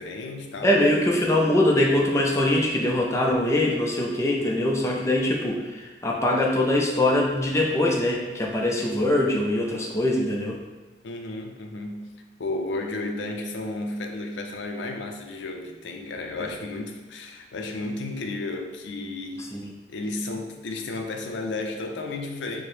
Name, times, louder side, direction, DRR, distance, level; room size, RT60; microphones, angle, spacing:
voice 1, 0.0-0.8 11.0-12.1 12.4-19.6 19.9-22.6, left 2 dB, 85° left, 3 dB, 0.5 m, -33 dB
voice 2, 0.6-10.6 19.5-19.7, left 1 dB, 15° left, -1 dB, 0.5 m, -23 dB
4.7 x 2.1 x 3.1 m, 1.2 s
head